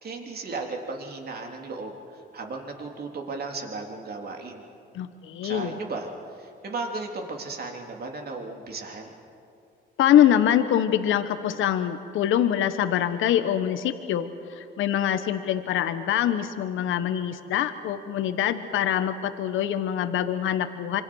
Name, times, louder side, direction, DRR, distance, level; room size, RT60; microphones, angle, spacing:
voice 1, 0.0-4.7 5.4-6.1 6.4-9.1, right 3 dB, 50° right, 2 dB, 3.5 m, -35 dB
voice 2, 4.9-5.7 10.0-21.0, left 10 dB, 80° left, 10 dB, 1.2 m, -24 dB
26.5 x 24.5 x 6.3 m, 2.5 s
cardioid pair, 90°, 20 cm